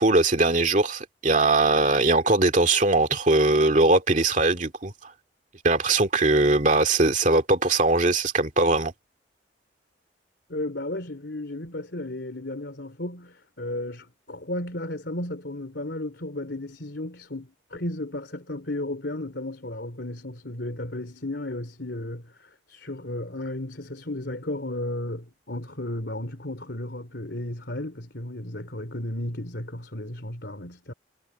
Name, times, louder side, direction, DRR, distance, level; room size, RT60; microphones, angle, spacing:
voice 1, 0.0-4.9 5.6-8.9, right 2 dB, 40° right, 2.2 m, -21 dB
voice 2, 10.5-30.9, left 1 dB, 65° left, 3.4 m, -34 dB
head